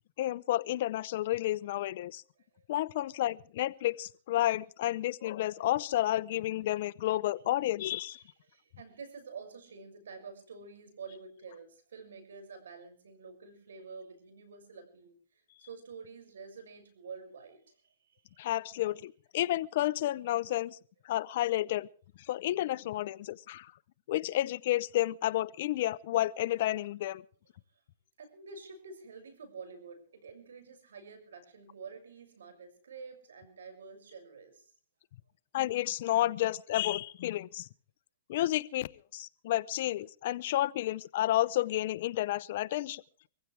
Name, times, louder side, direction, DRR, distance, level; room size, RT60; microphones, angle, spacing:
voice 1, 0.2-2.2 2.7-8.2 18.4-20.8 21.0-21.9 22.3-23.7 24.1-27.2 35.5-37.7 38.3-43.0, left 14 dB, 55° left, 0.8 m, -31 dB
voice 2, 8.2-18.5 27.7-27.8 28.2-34.7, right 5 dB, 85° right, 6.6 m, -49 dB
24.5 x 15.5 x 3.4 m
hypercardioid pair, 145°, 0 cm